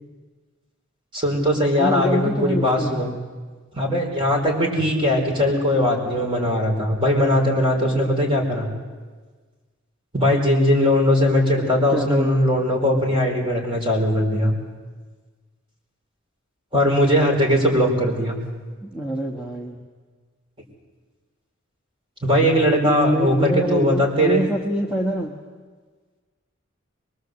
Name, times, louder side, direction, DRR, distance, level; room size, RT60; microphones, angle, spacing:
voice 1, 1.1-3.1 3.7-8.7 10.1-14.5 16.7-18.4 22.2-24.4, left 1 dB, 25° right, 0 dB, 5.0 m, -20 dB
voice 2, 1.8-3.1 11.9-12.3 18.8-19.8 22.8-25.3, equal, 5° right, -1 dB, 1.7 m, -25 dB
24.0 x 22.5 x 8.1 m, 1.4 s
head